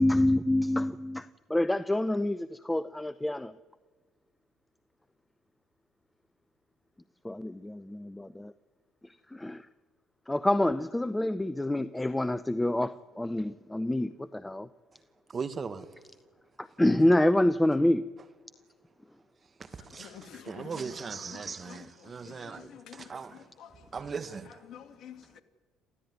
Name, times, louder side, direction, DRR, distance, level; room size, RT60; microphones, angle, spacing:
voice 1, 0.0-3.5 7.2-8.5 9.0-9.7 10.3-14.7 16.6-18.1, left 1 dB, 10° left, 0.8 m, -27 dB
voice 2, 15.3-16.0 19.2-23.5 23.9-24.7, right 5 dB, 40° right, 1.6 m, -39 dB
voice 3, 19.8-24.0 24.7-25.4, left 9 dB, 60° left, 2.2 m, -50 dB
27.5 x 15.5 x 9.6 m
hypercardioid pair, 65°, 0 cm